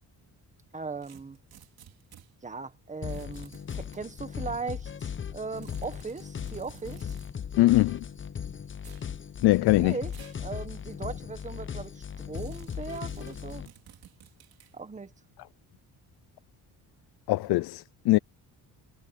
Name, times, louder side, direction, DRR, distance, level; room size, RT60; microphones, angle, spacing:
voice 1, 0.7-1.4 2.4-7.1 9.8-10.1 10.4-13.6 14.7-15.1, right 4 dB, 20° right, 1.5 m, -38 dB
sound 1, 1.0-2.3 3.1-4.0 5.6-7.3 8.8-9.1 10.1-10.4 10.9-11.0 12.3-14.7, right 10 dB, 65° right, 3.4 m, -54 dB
sound 2, 3.0-13.7, left 7 dB, 30° left, 0.8 m, -38 dB
voice 2, 7.6-8.0 9.4-10.0 17.3-18.2, left 18 dB, 80° left, 0.5 m, -22 dB
cardioid pair, 135°, 38 cm